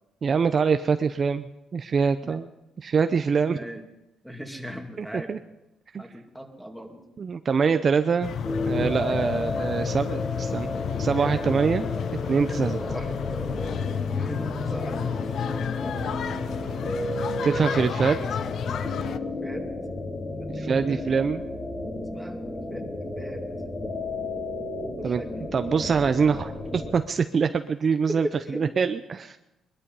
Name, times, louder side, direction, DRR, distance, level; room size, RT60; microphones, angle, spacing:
voice 1, 0.2-2.5 2.8-3.6 5.0-5.4 5.9-6.0 7.2-8.3 8.6-11.9 12.3-12.8 17.4-18.2 20.5-21.4 25.0-25.2 25.5-28.3 28.5-29.4, right 5 dB, 45° right, 10 dB, 0.6 m, -24 dB
voice 2, 3.5-3.8 4.2-5.3 6.0-7.0 11.1-11.6 12.7-15.2 15.8-16.2 17.3-17.8 18.3-18.5 19.4-19.7 20.4-21.1 22.1-22.9 23.2-23.5 25.0-25.5 28.1-28.6, equal, ahead, 2 dB, 2.5 m, -38 dB
sound 1, 8.2-19.2, left 8 dB, 65° left, 0.7 m, -31 dB
sound 2, 8.4-26.9, left 2 dB, 35° left, 4.0 m, -33 dB
21.0 x 12.5 x 5.5 m, 0.93 s
cardioid pair, 90°, 0 cm